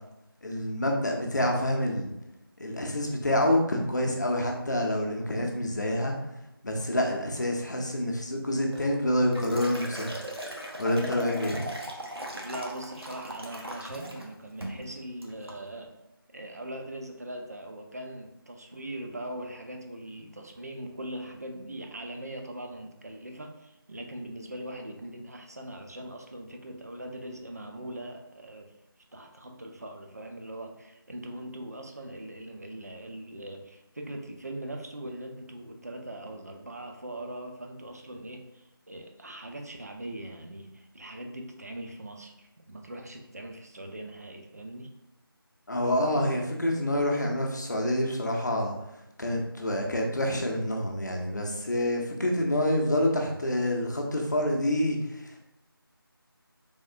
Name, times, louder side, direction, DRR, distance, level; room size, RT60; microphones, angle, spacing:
voice 1, 0.4-2.1 2.6-6.1 6.6-10.1 10.8-11.6 45.7-48.7 49.2-55.4, left 1 dB, 50° left, 1 dB, 0.6 m, -27 dB
Liquid, 8.7-14.3 14.6-14.9 15.2-15.6, right 1 dB, 85° right, 0.8 m, -39 dB
voice 2, 12.4-15.9 16.3-28.7 29.1-44.9, right 1 dB, 40° right, 3 dB, 0.4 m, -41 dB
3.5 x 3.1 x 2.6 m, 0.87 s
figure-of-eight pair, 170°, 13 cm